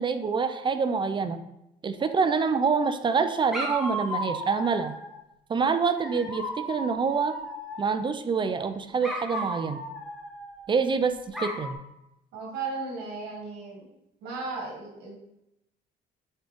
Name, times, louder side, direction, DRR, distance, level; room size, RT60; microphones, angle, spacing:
voice 1, 0.0-1.4 1.8-5.0 5.5-7.3 7.8-9.8 10.7-11.8, right 5 dB, 30° right, 10 dB, 0.4 m, -26 dB
Dog, 2.0-2.8 3.5-5.2 6.0-8.1 9.0-10.9 11.3-11.7, equal, ahead, 1.4 m, -35 dB
voice 2, 12.3-13.9 14.2-15.2, right 4 dB, 80° right, -2 dB, 2.4 m, -35 dB
7.9 x 3.8 x 3.5 m, 0.85 s
cardioid pair, 110°, 17 cm